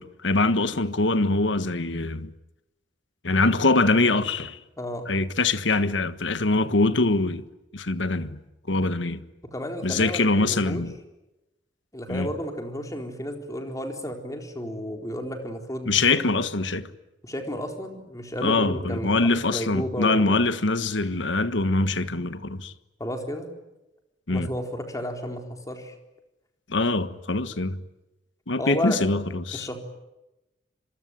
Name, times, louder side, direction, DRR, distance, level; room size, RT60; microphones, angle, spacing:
voice 1, 0.0-2.3 3.2-4.6 5.1-7.4 7.7-8.4 8.7-9.2 9.8-10.9 12.1-12.3 15.9-16.9 18.4-22.7 24.3-24.5 26.7-27.8 28.5-29.7, left 3 dB, 90° left, 1.5 m, -23 dB
voice 2, 4.8-5.1 9.4-10.8 11.9-16.3 17.2-20.4 23.0-23.5 24.3-25.9 28.6-29.0 29.5-29.8, equal, 20° left, 4.2 m, -32 dB
26.5 x 23.5 x 9.3 m
head